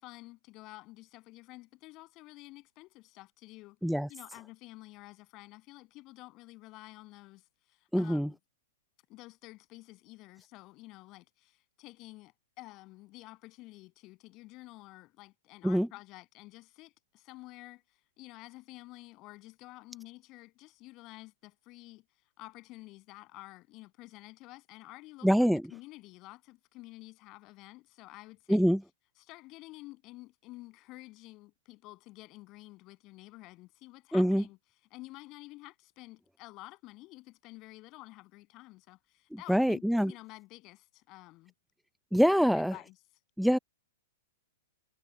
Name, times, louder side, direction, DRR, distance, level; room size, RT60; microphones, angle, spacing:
voice 1, 0.0-3.8 4.1-8.4 9.1-22.0 22.4-28.8 29.3-34.6 34.9-41.5 42.5-42.9, left 20 dB, 40° left, 7.6 m, -50 dB
voice 2, 7.9-8.3 15.6-15.9 25.2-25.6 28.5-28.8 34.1-34.4 39.5-40.1 42.1-42.8 43.4-43.6, equal, ahead, 0.4 m, -25 dB
hypercardioid pair, 115°, 0 cm